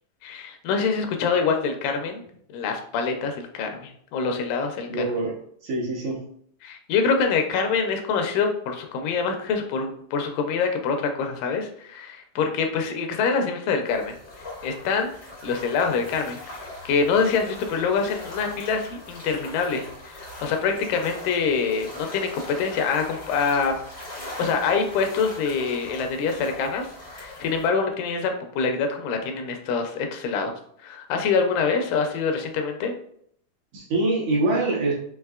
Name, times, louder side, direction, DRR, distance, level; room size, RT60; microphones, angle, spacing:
voice 1, 0.2-2.2 2.5-4.9 6.6-14.1 14.6-15.1 15.4-23.8 24.2-26.9 27.1-30.5 30.8-32.9, left 5 dB, 80° left, 4 dB, 2.2 m, -25 dB
voice 2, 4.9-5.3 5.6-6.2 33.7-34.9, right 2 dB, 70° right, -4 dB, 1.9 m, -24 dB
sound 1, 13.8-27.7, left 1 dB, 65° left, 0.6 m, -41 dB
5.6 x 2.9 x 2.3 m, 0.64 s
omnidirectional pair, 3.8 m